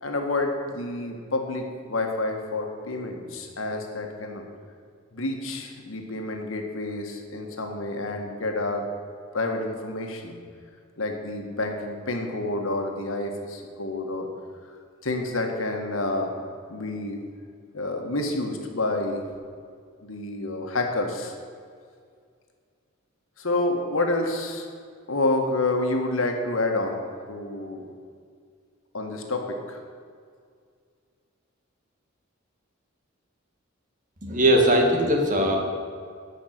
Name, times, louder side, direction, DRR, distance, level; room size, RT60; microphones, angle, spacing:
voice 1, 0.0-4.4 5.1-8.9 9.3-10.4 11.0-14.3 15.0-16.3 16.7-17.2 17.7-19.2 20.0-21.3 23.4-24.7 25.1-27.8 28.9-29.8, left 2 dB, 85° left, 3 dB, 1.7 m, -28 dB
voice 2, 34.2-35.6, equal, 40° right, 1 dB, 2.0 m, -20 dB
12.5 x 5.8 x 9.3 m, 2.1 s
head